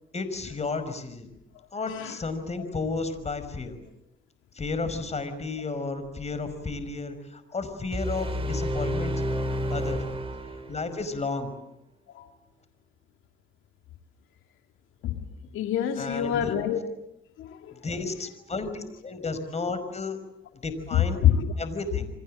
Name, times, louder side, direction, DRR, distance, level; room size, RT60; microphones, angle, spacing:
voice 1, 0.1-1.3 1.7-3.8 4.6-9.1 9.7-10.0 10.5-11.5 16.0-16.6 17.7-20.2 20.6-21.2 21.6-22.1, left 3 dB, 35° left, 11 dB, 5.4 m, -32 dB
sound 1, 7.9-11.0, equal, 30° right, 5.9 m, -30 dB
voice 2, 15.5-16.8 17.4-17.7 20.9-21.5, left 10 dB, 85° left, 5 dB, 2.2 m, -26 dB
29.0 x 24.5 x 7.7 m, 0.81 s
cardioid pair, 90°, 20 cm